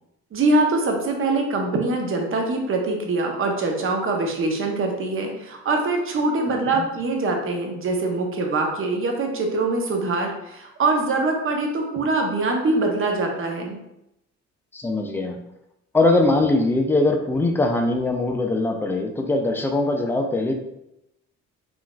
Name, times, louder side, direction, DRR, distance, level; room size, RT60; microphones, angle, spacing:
voice 1, 0.3-13.8, right 2 dB, 45° right, 2 dB, 0.7 m, -23 dB
voice 2, 14.7-15.4 15.9-20.5, left 2 dB, 5° left, 4 dB, 0.3 m, -21 dB
3.7 x 2.5 x 2.3 m, 0.85 s
cardioid pair, 90°, 30 cm